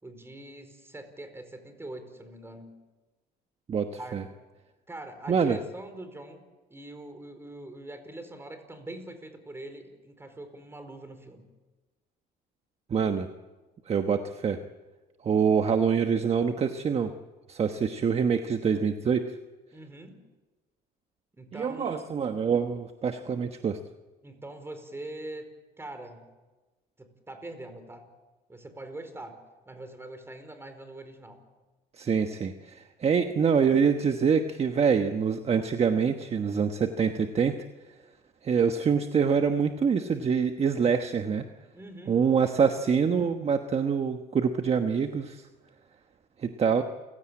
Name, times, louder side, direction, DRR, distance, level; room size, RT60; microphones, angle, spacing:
voice 1, 0.0-2.8 3.9-4.2 4.9-6.4 6.7-11.5 19.7-20.2 21.3-22.0 24.2-25.5 25.8-26.3 27.0-28.0 28.5-29.4 29.7-31.4 41.7-42.2, right 1 dB, 15° right, 8 dB, 4.6 m, -43 dB
voice 2, 3.7-4.2 5.3-5.6 12.9-13.3 13.9-14.6 15.2-17.1 17.5-19.2 21.5-23.8 32.0-37.5 38.4-41.4 42.1-45.4 46.4-46.8, right 6 dB, 35° right, 7 dB, 1.2 m, -25 dB
29.0 x 16.5 x 8.8 m, 1.2 s
cardioid pair, 110°, 17 cm